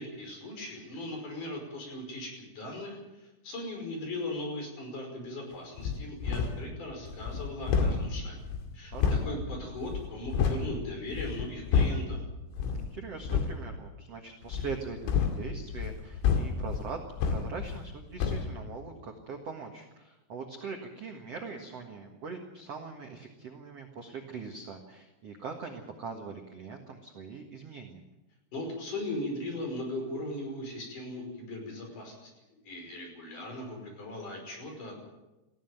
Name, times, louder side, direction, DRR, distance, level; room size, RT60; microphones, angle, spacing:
voice 1, 0.0-8.4 8.7-8.9 9.3-12.2 28.5-32.3 32.6-34.9, left 1 dB, 40° left, 2 dB, 6.5 m, -38 dB
sound 1, 5.8-6.7 7.1-10.7 11.1-12.2 12.5-12.9 13.2-13.6 14.5-17.9 18.2-18.5, left 6 dB, 90° left, 4.8 m, -30 dB
voice 2, 8.9-9.4 12.8-17.0 17.3-28.0, right 5 dB, 70° right, 3 dB, 1.5 m, -42 dB
19.5 x 15.5 x 9.2 m, 1.0 s
omnidirectional pair, 5.7 m